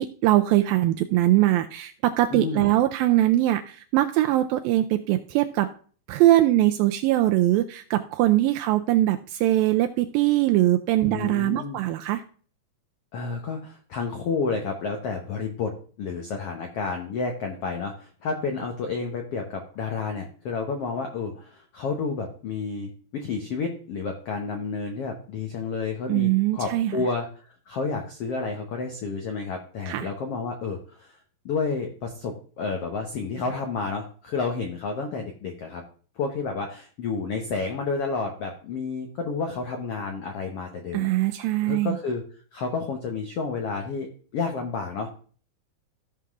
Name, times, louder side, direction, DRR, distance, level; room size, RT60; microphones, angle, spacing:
voice 1, 0.0-5.7 6.1-12.2 26.1-27.0 29.9-30.1 40.9-42.0, right 15 dB, 80° right, 7 dB, 2.2 m, -22 dB
voice 2, 2.3-2.7 11.0-11.8 13.1-15.7 16.0-31.2 31.4-35.8 36.2-41.1 41.6-42.2 42.5-44.1 44.3-45.1, left 4 dB, 85° left, 3 dB, 1.3 m, -30 dB
14.5 x 5.7 x 3.6 m, 0.42 s
omnidirectional pair, 4.3 m